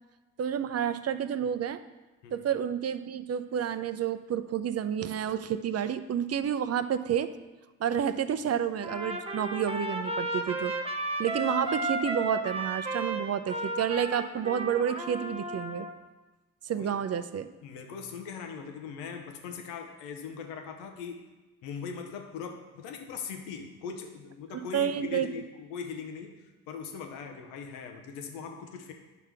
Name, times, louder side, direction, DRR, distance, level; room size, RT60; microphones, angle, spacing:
voice 1, 0.4-1.8 2.3-7.3 7.8-10.7 11.2-15.9 16.6-17.5 24.7-25.3, right 9 dB, 40° right, 12 dB, 0.6 m, -30 dB
Trumpet, 8.8-15.9, right 1 dB, 15° right, 1.0 m, -34 dB
voice 2, 17.6-21.2 21.6-28.9, left 6 dB, 80° left, 4 dB, 0.9 m, -40 dB
9.2 x 5.9 x 3.4 m, 1.2 s
hypercardioid pair, 45°, 39 cm